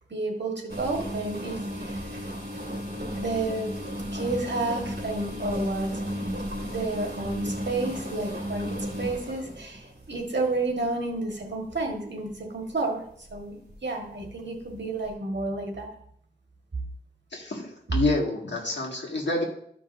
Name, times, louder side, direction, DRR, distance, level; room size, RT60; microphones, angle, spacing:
voice 1, 0.1-2.2 3.1-3.7 4.0-6.2 6.6-15.9, right 2 dB, 75° right, 1 dB, 1.5 m, -31 dB
sound 1, 0.7-10.9 11.5-11.8 12.3-12.5 13.3-13.7 14.0-14.1 15.1-15.2, equal, 60° right, 2.0 m, -34 dB
voice 2, 17.3-19.4, left 2 dB, 80° left, -2 dB, 1.9 m, -28 dB
13.5 x 5.4 x 2.6 m, 0.66 s
wide cardioid pair, 65°, 18 cm